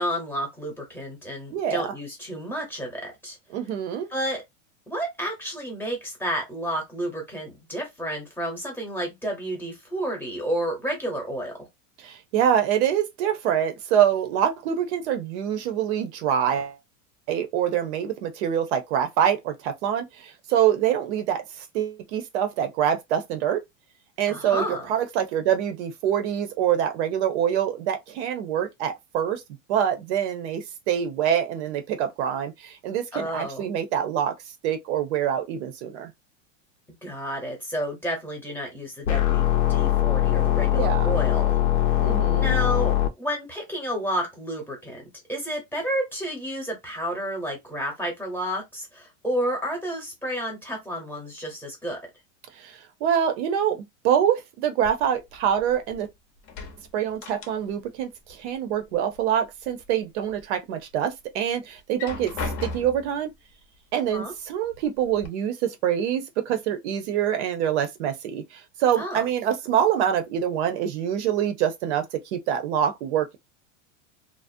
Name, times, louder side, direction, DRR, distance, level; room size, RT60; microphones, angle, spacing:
voice 1, 0.0-3.4 4.1-4.4 4.9-11.7 24.3-24.9 33.1-33.7 37.0-41.6 41.9-42.0 42.4-45.0 45.3-52.0 64.1-64.3 69.0-69.2, equal, 5° left, 0.8 m, -31 dB
voice 2, 1.5-1.9 3.5-4.1 12.0-16.8 17.3-23.6 24.2-29.4 29.7-34.3 34.6-36.1 39.8-39.9 40.7-41.1 42.0-42.5 52.6-56.1 56.9-63.3 63.9-73.4, right 9 dB, 60° right, 0.6 m, -25 dB
sound 1, 39.1-43.1, left 14 dB, 85° left, 0.7 m, -21 dB
sound 2, 54.8-56.1 56.4-58.0 58.2-59.2 59.6-60.4 60.9-61.0 61.8-63.2 64.1-64.2 64.6-65.3, left 3 dB, 40° left, 0.6 m, -37 dB
2.5 x 2.0 x 2.5 m
supercardioid pair, 150°, 38 cm